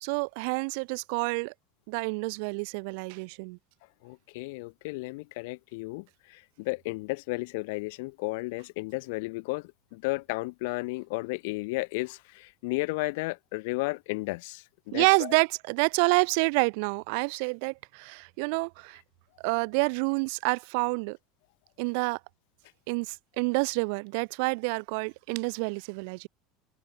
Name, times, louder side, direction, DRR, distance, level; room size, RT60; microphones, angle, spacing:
voice 1, 0.0-1.5 1.9-3.6 14.9-19.0 19.4-21.2 21.8-22.2 22.9-26.3, right 34 dB, 65° right, 0.6 m, -28 dB
voice 2, 4.0-15.3, left 25 dB, 65° left, 0.4 m, -33 dB
hypercardioid pair, 80°, 0 cm